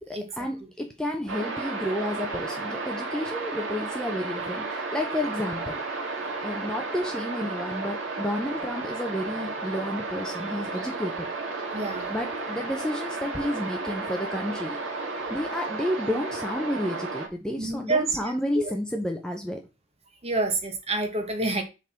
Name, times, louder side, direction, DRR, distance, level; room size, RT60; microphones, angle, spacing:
voice 1, 0.0-5.8 6.4-11.3 12.1-14.8 15.3-19.6, left 1 dB, 5° left, 0.8 m, -31 dB
sound 1, 1.3-17.3, right 3 dB, 75° right, 1.9 m, -33 dB
voice 2, 11.7-12.1 17.6-18.1 18.5-18.7 20.2-21.6, right 2 dB, 30° right, 1.6 m, -27 dB
7.2 x 3.9 x 6.0 m
head